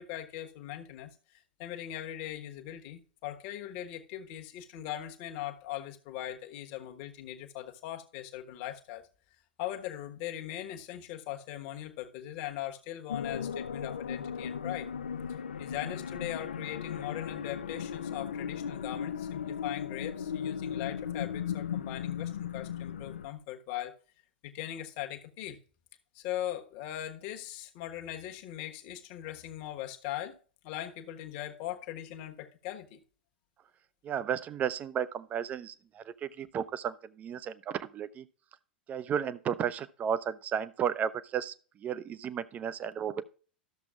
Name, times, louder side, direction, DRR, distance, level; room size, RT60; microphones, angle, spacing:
voice 1, 0.0-9.1 9.6-14.9 15.3-24.0 24.4-25.6 26.1-30.4 30.6-33.0, left 12 dB, 45° left, 1.2 m, -40 dB
sound 1, 13.1-23.3, left 8 dB, 75° left, 0.5 m, -37 dB
voice 2, 34.0-38.3 38.9-43.2, right 8 dB, 30° right, 0.6 m, -33 dB
13.0 x 6.8 x 2.4 m
figure-of-eight pair, 90°, 5 cm